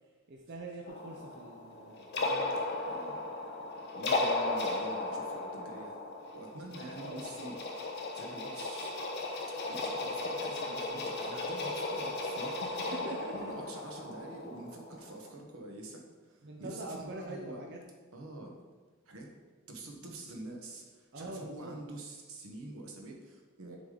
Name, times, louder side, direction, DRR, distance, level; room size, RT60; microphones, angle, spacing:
voice 1, 0.3-2.6 6.9-7.5 12.6-13.5 16.4-17.8 21.1-21.8, right 2 dB, 55° right, 0 dB, 0.6 m, -44 dB
sound 1, 0.9-15.3, left 2 dB, 50° left, 1.0 m, -36 dB
voice 2, 2.8-3.2 3.9-6.0 6.3-7.6 8.1-8.9 9.7-12.6 12.9-13.1 13.3-17.6 18.1-18.6 19.0-19.3 19.7-23.8, right 2 dB, 85° right, 1 dB, 1.2 m, -46 dB
7.0 x 5.1 x 3.8 m, 1.4 s
head